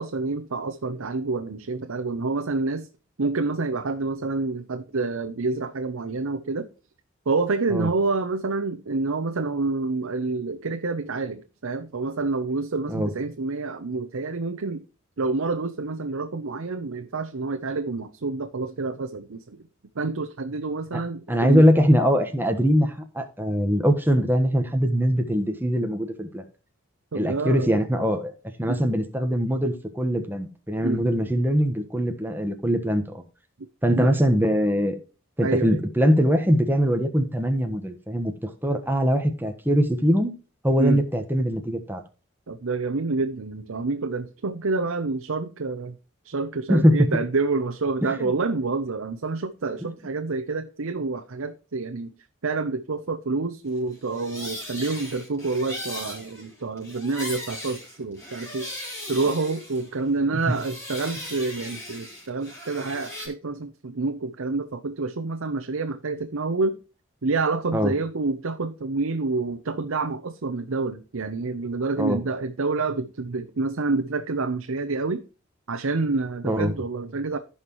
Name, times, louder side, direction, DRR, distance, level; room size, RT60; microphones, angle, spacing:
voice 1, 0.0-2.9 3.2-6.7 7.3-14.8 15.2-19.6 20.0-21.6 27.1-27.8 28.7-28.8 30.8-31.4 33.6-33.7 33.9-34.1 35.4-35.8 40.8-41.0 42.5-46.0 46.2-52.1 52.4-58.7 59.1-66.8 67.2-75.2 75.7-77.4, right 3 dB, 90° right, 0.8 m, -28 dB
voice 2, 21.3-26.4 27.1-28.3 28.6-33.2 33.8-35.0 35.4-40.3 40.6-42.0 46.7-47.1 48.0-48.3 60.3-60.6 67.7-67.9 72.0-72.2 76.4-76.7, equal, 10° right, 1.2 m, -22 dB
sound 1, 53.9-60.1 60.4-63.3, left 1 dB, 15° left, 4.1 m, -38 dB
15.5 x 5.8 x 3.0 m
head